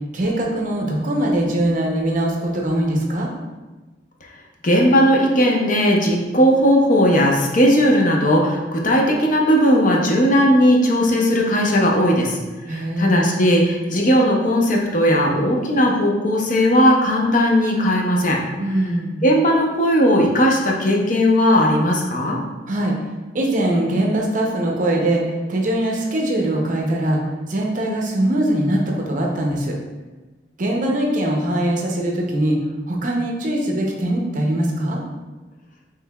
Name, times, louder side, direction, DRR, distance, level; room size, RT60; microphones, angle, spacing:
voice 1, 0.1-3.3 12.7-13.2 18.6-19.2 22.7-22.9 23.3-27.2 27.5-29.8 30.6-32.6 32.9-35.0, right 1 dB, 45° right, 0 dB, 0.6 m, -21 dB
voice 2, 4.6-12.4 12.7-18.4 19.2-22.4, equal, 45° left, -1 dB, 0.6 m, -17 dB
5.4 x 3.2 x 2.3 m, 1.2 s
head